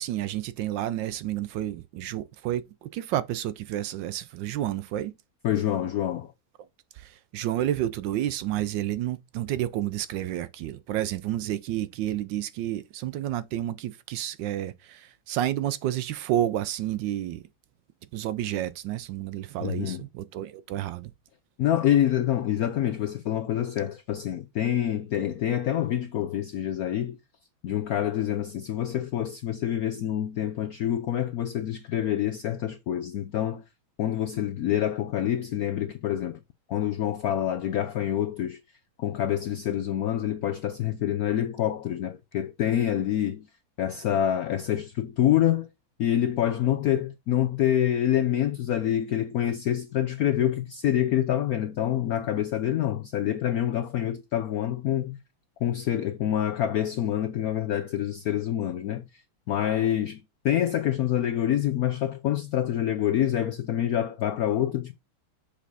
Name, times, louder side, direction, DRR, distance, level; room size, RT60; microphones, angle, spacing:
voice 1, 0.0-5.1 6.9-17.4 18.1-21.1, right 12 dB, 75° right, 1.1 m, -30 dB
voice 2, 5.4-6.3 19.6-20.0 21.6-27.2 27.6-33.6 34.0-36.4 36.7-38.6 39.0-43.5 43.8-45.7 46.0-55.2 55.6-59.2 59.5-64.9, left 11 dB, 75° left, 0.8 m, -26 dB
6.8 x 5.0 x 4.0 m
omnidirectional pair, 2.2 m